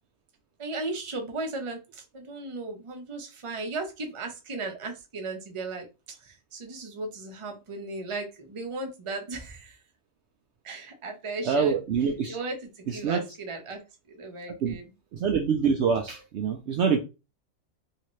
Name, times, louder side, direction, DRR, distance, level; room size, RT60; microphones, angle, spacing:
voice 1, 0.6-9.8 10.6-13.8 14.1-14.9, right 3 dB, 30° right, 0.7 m, -36 dB
voice 2, 11.5-12.3 13.0-13.2 14.6-14.7 15.2-17.0, right 6 dB, 65° right, 0.7 m, -25 dB
3.3 x 2.8 x 3.1 m
omnidirectional pair, 1.4 m